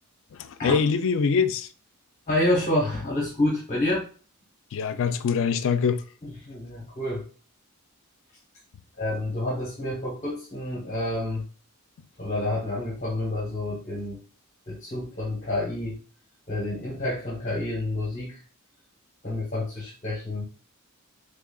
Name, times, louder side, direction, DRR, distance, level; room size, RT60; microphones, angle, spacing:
voice 1, 0.3-1.7 4.7-6.0, left 6 dB, 60° left, 0.3 m, -24 dB
voice 2, 2.3-4.0 6.2-7.2 9.0-11.5 12.2-14.2 14.7-16.0 16.5-18.4 19.2-20.5, left 1 dB, 30° left, 0.9 m, -28 dB
3.7 x 3.3 x 2.3 m
head